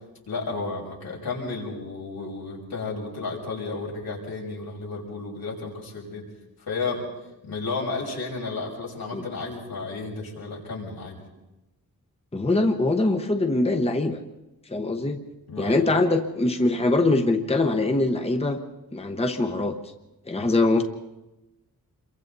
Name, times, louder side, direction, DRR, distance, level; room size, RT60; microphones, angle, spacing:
voice 1, 0.3-6.2 6.6-7.0 7.4-11.2 15.5-15.9, left 3 dB, 85° left, -3 dB, 6.5 m, -32 dB
voice 2, 12.3-14.2 14.7-15.2 15.6-18.6 18.9-19.7 20.3-20.8, left 2 dB, 15° left, 5 dB, 1.0 m, -23 dB
28.0 x 23.5 x 4.1 m, 0.98 s
wide cardioid pair, 175°, 36 cm